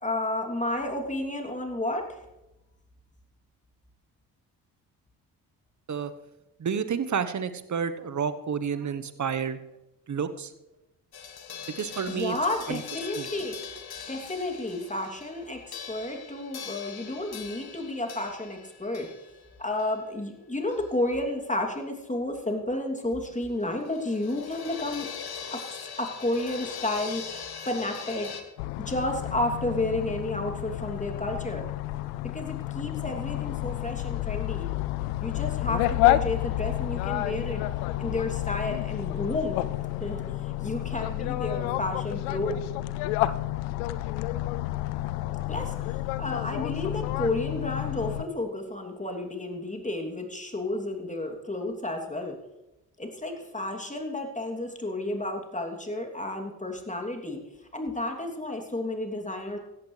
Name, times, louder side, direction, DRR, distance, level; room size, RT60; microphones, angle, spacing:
voice 1, 0.0-2.2 11.5-11.6 12.1-13.7 14.1-19.1 19.6-25.1 25.5-28.3 28.9-31.7 32.3-34.7 35.2-37.6 38.0-39.6 40.0-42.6 45.5-52.4 53.0-57.4 57.7-59.6, left 1 dB, 15° left, 2 dB, 3.0 m, -31 dB
voice 2, 6.6-9.6 10.1-10.5 11.8-12.4 12.7-12.8 13.2-13.3, right 7 dB, 40° right, 11 dB, 1.2 m, -30 dB
sound 1, 11.1-21.0 21.3-21.4 23.5-28.4, left 7 dB, 55° left, 1.8 m, -41 dB
sound 2, 28.6-48.2, left 16 dB, 80° left, 0.6 m, -30 dB
16.5 x 14.5 x 3.4 m, 0.97 s
hypercardioid pair, 45°, 44 cm